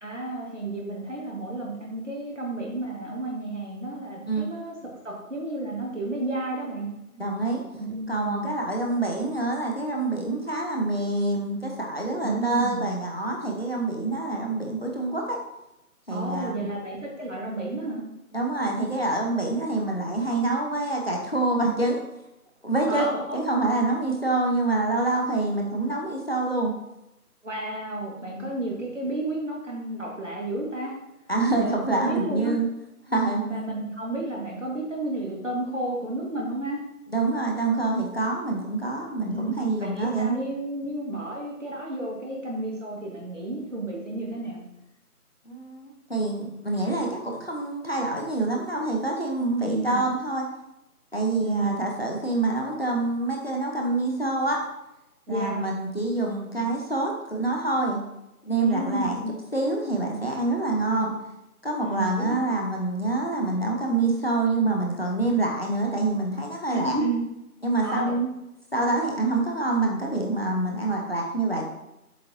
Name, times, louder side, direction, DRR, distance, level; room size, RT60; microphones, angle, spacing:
voice 1, 0.0-4.8 5.0-6.9 7.8-8.5 12.2-12.9 16.1-18.0 22.9-23.4 27.4-30.9 31.5-32.6 33.4-36.8 39.2-44.6 49.6-50.1 51.4-51.8 55.3-55.7 58.6-59.3 61.8-62.6 66.7-67.2 67.8-68.1, right 2 dB, 50° right, -3 dB, 2.3 m, -31 dB
voice 2, 7.1-7.6 8.1-15.4 16.1-16.7 18.3-22.0 22.6-23.1 23.3-26.7 28.2-28.5 31.3-32.7 33.1-33.4 37.1-40.4 45.5-50.5 51.1-54.6 55.3-58.0 58.4-59.2 59.5-61.1 61.6-67.0 67.6-68.3 68.7-71.7, right 2 dB, 40° left, -1 dB, 1.1 m, -26 dB
7.6 x 6.4 x 2.9 m, 0.91 s
figure-of-eight pair, 175°, 46 cm